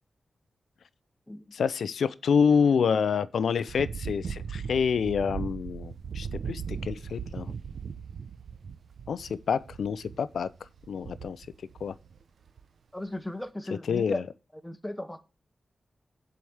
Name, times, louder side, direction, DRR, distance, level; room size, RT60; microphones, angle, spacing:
voice 1, 1.5-7.5 9.1-10.5 10.9-11.5 11.8-11.9 13.9-14.2, left 6 dB, 90° left, 0.5 m, -27 dB
sound 1, 3.7-12.2 12.5-12.6, right 6 dB, 75° right, 0.7 m, -38 dB
voice 2, 12.9-14.2 14.6-15.2, left 1 dB, 10° left, 1.1 m, -36 dB
7.8 x 4.8 x 7.2 m
wide cardioid pair, 85°, 0 cm